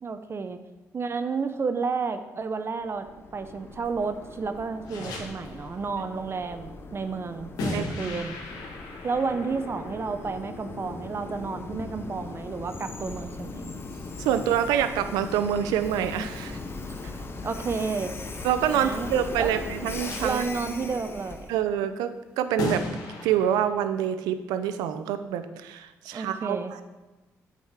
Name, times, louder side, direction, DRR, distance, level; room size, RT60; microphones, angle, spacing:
voice 1, 0.0-0.6 0.9-3.1 3.3-8.3 9.0-13.6 17.4-18.1 18.7-19.1 19.4-19.5 20.2-21.5 26.1-26.7, right 4 dB, 40° right, 9 dB, 0.7 m, -31 dB
Train, 2.8-21.6, left 3 dB, 35° left, 1.0 m, -40 dB
sound 1, 4.8-5.7 7.6-18.5 19.8-20.6 22.6-23.7, left 2 dB, 80° left, 1.6 m, -39 dB
voice 2, 7.7-8.2 14.2-16.6 17.0-17.1 18.4-20.4 21.5-22.8 23.2-26.8, right 9 dB, 90° right, 11 dB, 0.6 m, -26 dB
8.5 x 4.9 x 5.7 m, 1.1 s
supercardioid pair, 65°, 7 cm